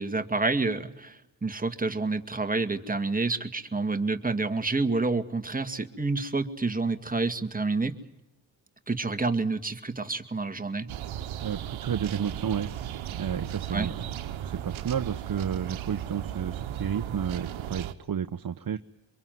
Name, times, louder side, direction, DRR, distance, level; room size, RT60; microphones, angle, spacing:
voice 1, 0.0-8.0 8.9-10.9 13.7-13.9, right 3 dB, 20° right, 7 dB, 2.2 m, -28 dB
sound 1, 10.9-17.9, right 11 dB, 90° right, 1.2 m, -36 dB
voice 2, 11.4-12.7 13.1-18.8, right 8 dB, 50° right, 10 dB, 1.0 m, -32 dB
24.5 x 22.5 x 9.4 m, 0.91 s
cardioid pair, 60°, 46 cm